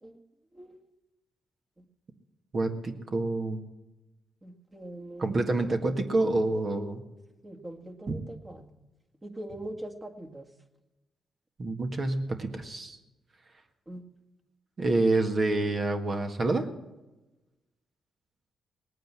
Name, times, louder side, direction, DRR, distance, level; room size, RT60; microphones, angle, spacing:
voice 1, 2.5-3.6 5.2-7.0 8.1-8.2 11.6-13.0 14.8-16.7, right 2 dB, 45° right, 5 dB, 1.7 m, -27 dB
voice 2, 4.4-5.3 7.4-8.7 9.2-10.5 13.9-14.0, right 1 dB, 25° right, 4 dB, 2.0 m, -42 dB
19.0 x 9.2 x 7.5 m, 1.1 s
cardioid pair, 70°, 0 cm